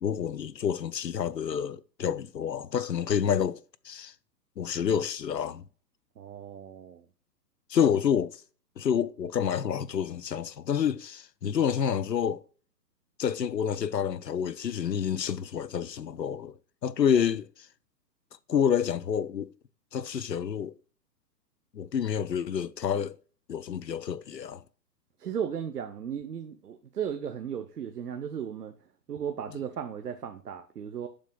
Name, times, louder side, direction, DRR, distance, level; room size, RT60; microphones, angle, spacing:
voice 1, 0.0-3.6 3.8-4.1 4.6-5.6 7.7-8.4 8.8-12.4 13.2-16.5 16.8-17.5 18.5-19.5 19.9-20.7 21.7-23.2 23.5-24.6 29.5-29.6, left 8 dB, 85° left, 0.6 m, -28 dB
voice 2, 6.2-7.0 25.2-28.7 29.1-31.1, right 8 dB, 70° right, 1.0 m, -35 dB
12.0 x 5.1 x 2.3 m
figure-of-eight pair, 120°, 49 cm